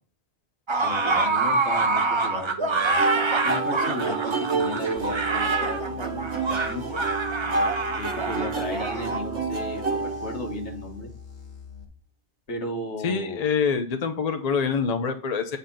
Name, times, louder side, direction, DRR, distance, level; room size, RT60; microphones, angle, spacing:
sound 1, 0.7-9.2, right 3 dB, 30° right, 0.7 m, -26 dB
voice 1, 0.8-3.1 3.4-7.0 8.0-11.1 12.5-13.5, left 2 dB, 90° left, 2 dB, 1.7 m, -35 dB
sound 2, 3.0-10.9, right 3 dB, 80° right, 1.6 m, -29 dB
sound 3, 5.0-11.8, left 7 dB, 55° left, 1.7 m, -43 dB
voice 2, 13.0-15.6, left 6 dB, 40° left, 7 dB, 0.8 m, -25 dB
8.5 x 4.1 x 3.8 m, 0.38 s
omnidirectional pair, 1.1 m